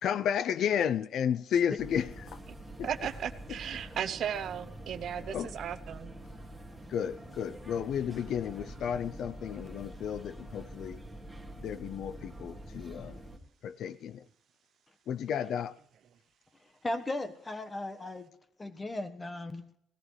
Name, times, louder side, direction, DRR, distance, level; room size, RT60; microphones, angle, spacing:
voice 1, 0.0-2.4 2.8-2.9 3.5-3.6 5.2-5.5 6.9-11.0 11.6-13.2 13.6-14.3 15.1-15.8, left 8 dB, 65° left, 0.5 m, -32 dB
sound 1, 1.8-13.4, right 1 dB, 5° right, 2.3 m, -46 dB
voice 2, 2.8-6.1, right 9 dB, 60° right, 0.8 m, -36 dB
voice 3, 16.8-18.3 18.6-19.6, left 1 dB, 20° left, 1.3 m, -36 dB
18.0 x 14.0 x 3.3 m
cardioid pair, 110°, 0 cm